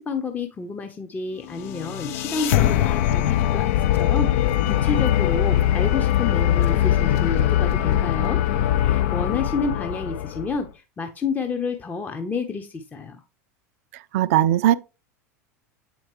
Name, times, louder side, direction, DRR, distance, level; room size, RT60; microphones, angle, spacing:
voice 1, 0.0-8.4 8.8-13.2, left 4 dB, 20° left, 0.7 m, -30 dB
sound 1, 1.5-10.6, left 11 dB, 55° left, 0.5 m, -21 dB
voice 2, 14.1-14.8, right 12 dB, 55° right, 0.4 m, -18 dB
8.4 x 4.4 x 3.0 m
figure-of-eight pair, 80°, 9 cm